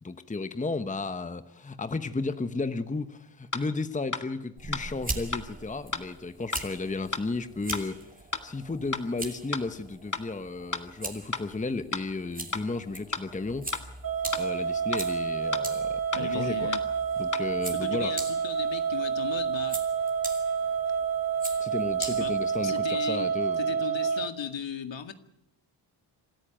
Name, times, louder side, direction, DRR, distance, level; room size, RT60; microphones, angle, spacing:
voice 1, 0.0-8.1 8.4-13.7 14.4-16.7 17.2-18.1 21.6-23.7, left 3 dB, 15° left, 1.0 m, -33 dB
sound 1, 3.5-3.6 4.1-4.2 4.7-4.8 5.3-5.4 5.9-6.0 6.5-6.6 7.1-7.2 7.7-7.8 8.3-8.4 8.9-9.0 9.5-9.6 10.1-10.2 10.7-10.8 11.3-11.4 11.9-12.0 12.5-12.6 13.1-13.2 13.7-13.8 14.3-14.4 14.9-15.0 15.5-15.6 16.1-16.2 16.7-16.8 17.3-17.4, left 4 dB, 40° left, 1.9 m, -31 dB
sound 2, 4.6-22.9, right 2 dB, 15° right, 3.1 m, -42 dB
sound 3, 14.0-24.3, right 6 dB, 45° right, 3.9 m, -29 dB
voice 2, 16.1-16.9 17.7-19.8 22.0-23.3 23.6-25.1, left 7 dB, 65° left, 2.1 m, -37 dB
26.5 x 13.5 x 9.0 m
cardioid pair, 95°, 48 cm